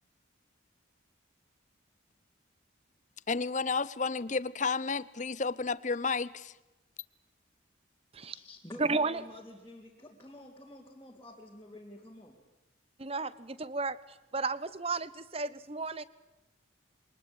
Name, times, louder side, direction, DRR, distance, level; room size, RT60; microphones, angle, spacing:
voice 1, 3.3-6.5, left 4 dB, 35° left, 0.7 m, -31 dB
voice 2, 8.2-12.4, left 1 dB, 10° left, 3.2 m, -49 dB
voice 3, 8.8-9.2 13.0-14.0 14.3-16.0, right 3 dB, 30° right, 0.9 m, -33 dB
23.5 x 20.0 x 8.8 m
head